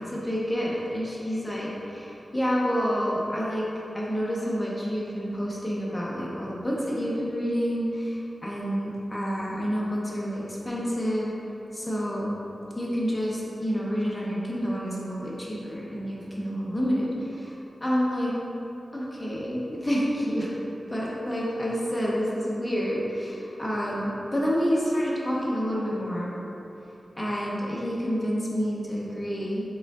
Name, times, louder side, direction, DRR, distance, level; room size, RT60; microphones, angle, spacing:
voice 1, 0.0-3.6 3.9-8.2 8.4-11.3 11.7-12.3 12.8-17.1 17.4-17.5 17.8-18.3 18.9-20.5 20.9-26.3 27.2-29.6, equal, 10° left, -5 dB, 0.7 m, -28 dB
4.9 x 3.5 x 2.3 m, 2.9 s
wide cardioid pair, 130°, 0 cm